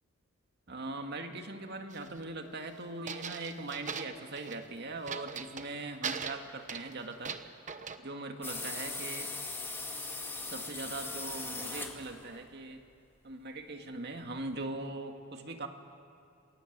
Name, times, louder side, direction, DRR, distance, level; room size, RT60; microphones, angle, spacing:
voice 1, 0.7-7.4 8.0-9.3 10.5-12.8 13.2-15.7, right 2 dB, 55° right, 5 dB, 2.0 m, -41 dB
sound 1, 1.9-2.2 3.1-4.7 5.1-5.7 6.0-8.0, right 6 dB, 40° right, 1.1 m, -40 dB
sound 2, 8.4-12.4, left 3 dB, 10° left, 2.2 m, -39 dB
28.5 x 21.5 x 8.0 m, 2.6 s
head